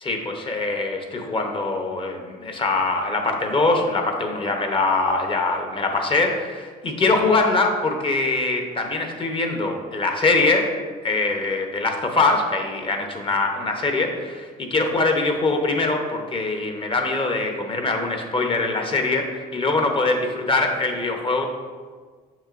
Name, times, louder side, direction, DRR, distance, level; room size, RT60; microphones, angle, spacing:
voice 1, 0.0-10.7 11.0-21.5, left 3 dB, 30° left, 3 dB, 0.9 m, -23 dB
6.6 x 6.0 x 2.5 m, 1.5 s
cardioid pair, 110°, 17 cm